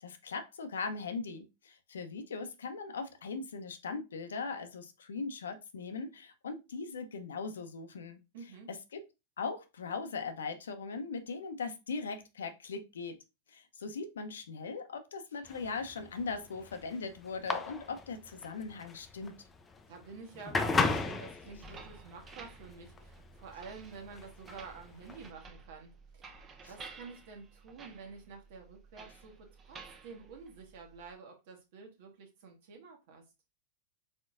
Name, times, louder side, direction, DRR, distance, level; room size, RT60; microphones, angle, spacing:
voice 1, 0.0-8.2 8.7-9.0 9.4-13.2 13.5-19.5, left 4 dB, 80° left, 0.7 m, -39 dB
voice 2, 8.3-8.7 19.9-26.2 26.7-33.2, right 5 dB, 60° right, 1.4 m, -49 dB
sound 1, 15.5-25.3, left 4 dB, 20° left, 0.5 m, -36 dB
sound 2, 21.5-31.1, right 4 dB, 25° right, 0.8 m, -53 dB
4.2 x 3.8 x 2.5 m
hypercardioid pair, 110°, 0 cm